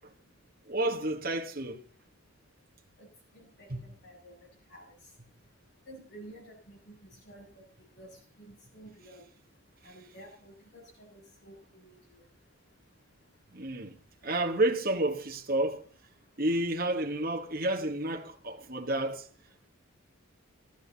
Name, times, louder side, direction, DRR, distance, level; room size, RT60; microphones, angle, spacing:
voice 1, 0.7-1.8 3.7-3.8 13.5-13.9 14.2-15.8 16.4-19.3, right 1 dB, 45° right, 1.5 m, -30 dB
voice 2, 3.3-4.3 4.7-4.8 5.9-7.0 7.3-7.5 8.0-8.1 8.5-9.2 9.8-11.6 11.8-12.0, right 1 dB, 50° left, 7.5 m, -51 dB
17.0 x 13.5 x 4.1 m
head